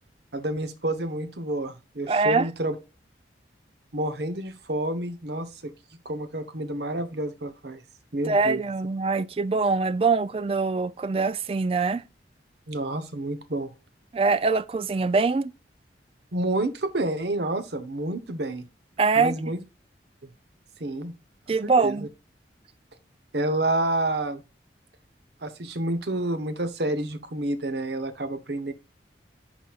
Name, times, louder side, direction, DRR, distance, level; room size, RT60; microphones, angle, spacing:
voice 1, 0.3-2.8 3.9-5.7 6.0-7.8 8.1-8.6 12.7-13.7 16.3-18.6 19.1-19.6 20.8-21.1 21.6-22.1 23.3-24.4 25.4-28.7, right 1 dB, 70° right, 0.9 m, -29 dB
voice 2, 2.1-2.5 8.3-12.0 14.1-15.5 19.0-19.3 21.5-22.1, right 4 dB, 30° right, 0.3 m, -23 dB
10.0 x 4.0 x 2.4 m
head